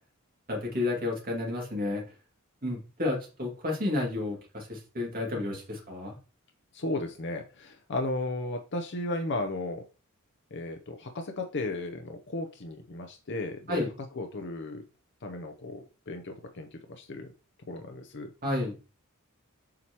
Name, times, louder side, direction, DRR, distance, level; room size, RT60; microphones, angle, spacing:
voice 1, 0.5-2.0 2.6-6.1 13.7-13.9 18.4-18.7, left 2 dB, 45° right, 0 dB, 2.2 m, -31 dB
voice 2, 6.7-9.8 10.5-13.9 14.1-14.8 15.2-17.3 17.7-18.3, left 2 dB, 55° left, 4 dB, 0.7 m, -35 dB
7.5 x 4.5 x 3.0 m, 0.33 s
head